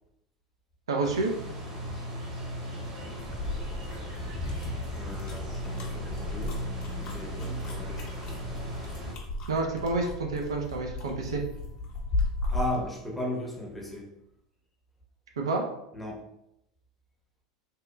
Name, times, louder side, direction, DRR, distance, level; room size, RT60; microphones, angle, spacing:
voice 1, 0.9-1.3 9.5-11.4 15.4-15.6, right 3 dB, 75° right, 1 dB, 0.4 m, -29 dB
sound 1, 1.0-9.1, equal, 35° right, 1.0 m, -37 dB
sound 2, 3.2-12.8, left 2 dB, 40° left, 0.7 m, -35 dB
voice 2, 4.9-6.6 7.0-8.5 12.5-14.1 15.9-16.3, left 1 dB, 5° left, -2 dB, 0.7 m, -36 dB
2.8 x 2.2 x 2.2 m, 0.79 s
figure-of-eight pair, 85°, 3 cm